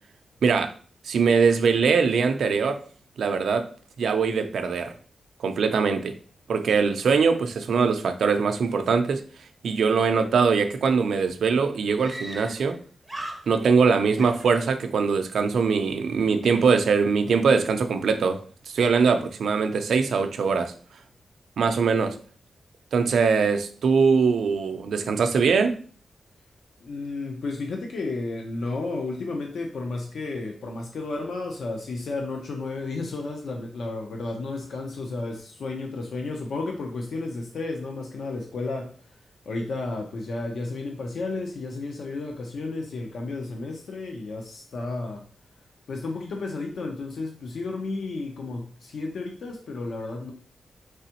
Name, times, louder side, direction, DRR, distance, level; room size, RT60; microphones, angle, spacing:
voice 1, 0.4-0.7 1.0-2.8 3.2-3.7 4.0-4.9 5.4-6.2 6.5-9.2 9.6-12.8 13.5-20.7 21.6-22.2 22.9-25.8, right 5 dB, 75° right, 0.5 m, -22 dB
Screaming, 12.0-12.8 13.0-13.8 14.2-15.1, right 1 dB, 5° right, 0.5 m, -39 dB
voice 2, 26.8-39.1 39.5-45.3 45.9-50.3, left 3 dB, 65° left, 0.6 m, -32 dB
4.8 x 3.4 x 2.9 m
wide cardioid pair, 180°, 0 cm